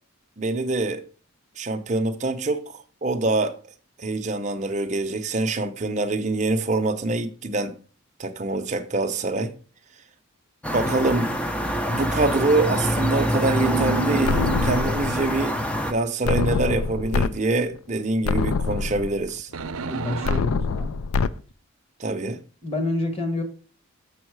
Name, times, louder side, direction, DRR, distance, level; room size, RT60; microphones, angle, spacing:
voice 1, 0.4-1.0 1.6-3.6 4.0-7.8 8.2-9.5 10.7-11.3 11.9-19.5 22.0-22.4, right 2 dB, 35° right, 0.6 m, -25 dB
sound 1, 10.6-15.9, equal, 5° left, 0.5 m, -25 dB
sound 2, 13.6-15.4 19.5-20.4, right 4 dB, 80° right, 0.6 m, -29 dB
sound 3, 14.2-15.3 16.2-17.3 17.7-17.8 18.2-19.3 20.2-21.3, left 4 dB, 80° left, 0.4 m, -25 dB
voice 2, 19.9-20.9 22.6-23.4, left 2 dB, 25° left, 1.3 m, -28 dB
6.9 x 6.4 x 4.6 m
head